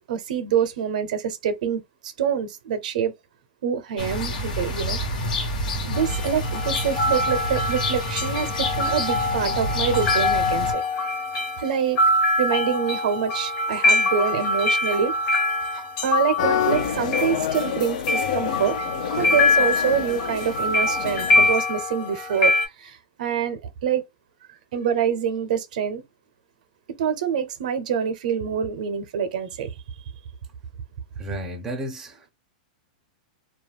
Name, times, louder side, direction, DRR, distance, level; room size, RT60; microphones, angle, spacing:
voice 1, 0.1-3.1 3.6-5.0 5.8-11.1 11.6-12.0 12.4-15.1 15.7-18.8 19.2-24.0 24.7-26.0 27.0-29.7, right 7 dB, 65° right, 0.6 m, -26 dB
sound 1, 4.0-10.7, left 1 dB, 90° left, 1.2 m, -28 dB
sound 2, 5.9-22.7, left 2 dB, 35° left, 0.8 m, -24 dB
sound 3, 16.4-21.5, left 8 dB, 65° left, 0.5 m, -28 dB
voice 2, 31.2-32.3, right 1 dB, 10° right, 0.5 m, -33 dB
2.3 x 2.1 x 3.2 m
supercardioid pair, 160°, 4 cm